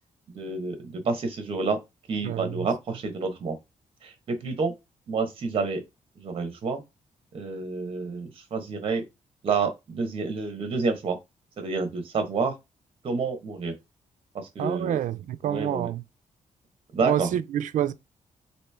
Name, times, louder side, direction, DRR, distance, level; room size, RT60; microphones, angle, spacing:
voice 1, 0.3-1.8 2.1-3.6 4.0-4.7 5.1-5.8 6.2-6.8 7.3-9.0 9.4-11.2 11.6-12.5 13.0-13.7 14.3-15.0 15.4-15.9 16.9-17.3, right 4 dB, 45° right, 1.0 m, -29 dB
voice 2, 2.2-2.7 14.6-16.0 17.0-17.9, right 11 dB, 80° right, 0.4 m, -28 dB
3.1 x 2.7 x 3.4 m
wide cardioid pair, 160°, 13 cm